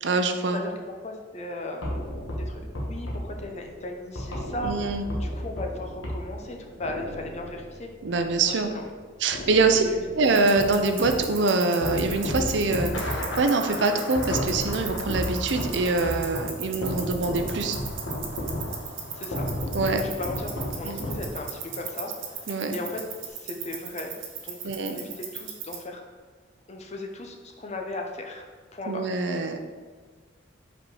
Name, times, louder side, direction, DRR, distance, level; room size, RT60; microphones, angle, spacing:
voice 1, 0.0-0.6 4.6-5.0 8.0-8.7 9.2-9.8 10.2-17.8 19.7-20.0 20.8-21.0 22.5-22.7 24.6-25.0 28.9-29.6, right 3 dB, 65° right, 6 dB, 0.5 m, -24 dB
voice 2, 0.5-2.0 2.4-7.9 8.4-8.9 9.8-10.3 19.1-19.5 19.9-24.1 24.4-26.0 26.7-28.5 28.7-29.2, left 2 dB, 35° left, 3 dB, 0.6 m, -37 dB
sound 1, 1.8-8.9 9.3-11.3 11.8-21.7, equal, 85° left, 1.3 m, -34 dB
sound 2, 10.2-25.8, right 7 dB, 85° right, 0.9 m, -38 dB
Thunder, 11.0-23.3, left 2 dB, 70° left, 0.9 m, -41 dB
5.2 x 4.3 x 4.7 m, 1.5 s
head